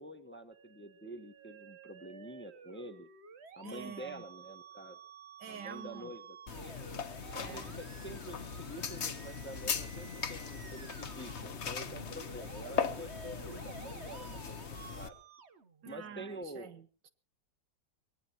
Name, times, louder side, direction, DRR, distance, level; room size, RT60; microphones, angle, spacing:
voice 1, 0.0-3.1 3.6-5.0 5.4-6.9 7.3-15.2 15.9-16.7, right 1 dB, 10° left, 8 dB, 1.1 m, -47 dB
Musical instrument, 0.5-16.4, right 6 dB, 45° right, 1.3 m, -53 dB
voice 2, 3.6-4.2 5.4-6.1 7.4-7.8 15.8-17.1, right 7 dB, 90° right, 10 dB, 2.1 m, -48 dB
sound 1, 6.5-15.1, left 6 dB, 45° left, 1.3 m, -39 dB
23.5 x 19.0 x 3.0 m, 0.39 s
omnidirectional pair, 1.9 m